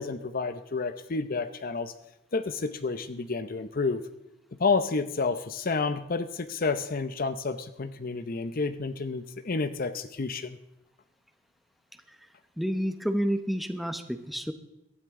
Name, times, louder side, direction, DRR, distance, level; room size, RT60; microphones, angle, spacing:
voice 1, 0.0-1.9 2.3-4.0 4.6-10.6, left 4 dB, 50° left, 11 dB, 0.7 m, -30 dB
voice 2, 12.6-14.5, equal, ahead, 9 dB, 0.8 m, -29 dB
18.0 x 13.0 x 3.7 m, 0.87 s
head